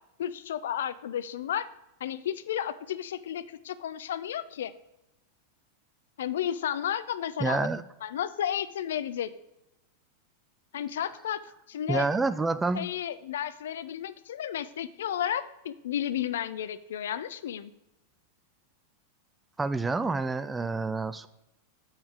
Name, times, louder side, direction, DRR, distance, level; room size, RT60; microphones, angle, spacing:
voice 1, 0.2-1.7 2.0-4.7 6.2-7.7 8.0-9.3 10.7-11.4 11.7-12.1 12.7-17.7, left 10 dB, 60° left, 15 dB, 0.4 m, -32 dB
voice 2, 7.4-7.8 11.9-12.8 19.6-21.3, right 3 dB, 10° right, 13 dB, 0.4 m, -28 dB
7.3 x 4.8 x 6.3 m, 0.91 s
figure-of-eight pair, 90°, 0 cm